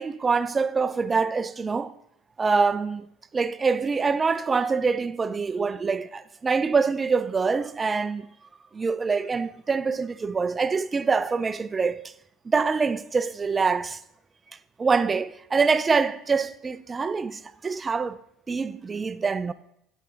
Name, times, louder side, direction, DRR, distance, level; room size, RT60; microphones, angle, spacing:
voice 1, 0.0-1.9 2.4-3.1 3.3-8.3 8.7-12.1 12.5-14.0 14.8-18.2 18.5-19.5, right 4 dB, 25° right, 0.4 m, -25 dB
10.0 x 4.4 x 3.8 m
hypercardioid pair, 80°, 0 cm